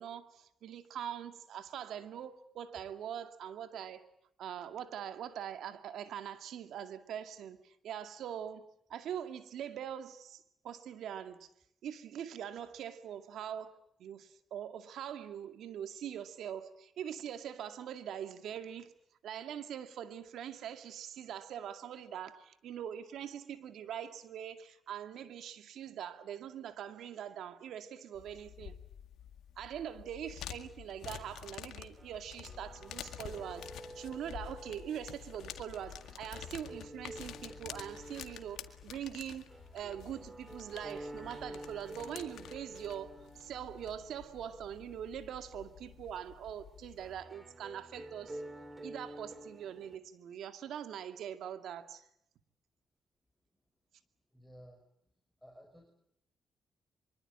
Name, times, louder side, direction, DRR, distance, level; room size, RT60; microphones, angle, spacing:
voice 1, 0.0-4.0 4.4-11.5 11.8-18.9 19.2-28.8 29.6-33.7 33.9-39.5 39.7-48.4 48.8-52.1, right 9 dB, 80° right, 2.2 m, -43 dB
sound 1, 28.1-47.2, left 10 dB, 80° left, 1.9 m, -49 dB
sound 2, 32.0-50.0, right 1 dB, 20° right, 3.3 m, -51 dB
voice 2, 54.3-54.8 55.4-55.9, equal, 5° left, 5.2 m, -55 dB
24.5 x 24.0 x 8.8 m
cardioid pair, 65°, 0 cm